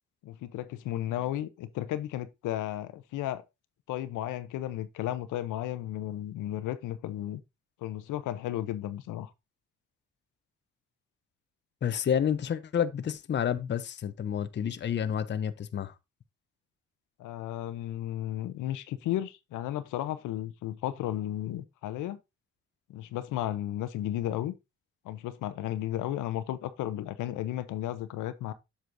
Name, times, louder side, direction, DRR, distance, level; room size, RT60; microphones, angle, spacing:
voice 1, 0.2-3.4 3.9-7.4 7.8-9.3 17.2-22.2 22.9-24.5 25.0-28.5, left 13 dB, 85° left, 0.7 m, -34 dB
voice 2, 11.8-15.9, left 8 dB, 35° left, 0.6 m, -29 dB
7.8 x 6.7 x 2.6 m
cardioid pair, 90°, 30 cm